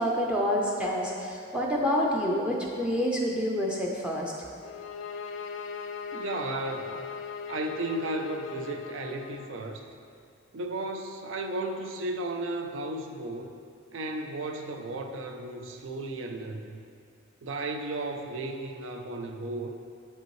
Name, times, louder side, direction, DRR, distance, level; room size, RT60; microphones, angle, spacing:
voice 1, 0.0-4.3, equal, 5° right, -3 dB, 0.4 m, -27 dB
sound 1, 4.6-9.5, left 6 dB, 70° left, 0.3 m, -39 dB
voice 2, 6.1-7.0 7.5-9.9 10.5-13.5 13.9-16.8 17.4-19.7, right 2 dB, 75° right, 4 dB, 0.5 m, -34 dB
7.0 x 5.3 x 3.1 m, 2.3 s
head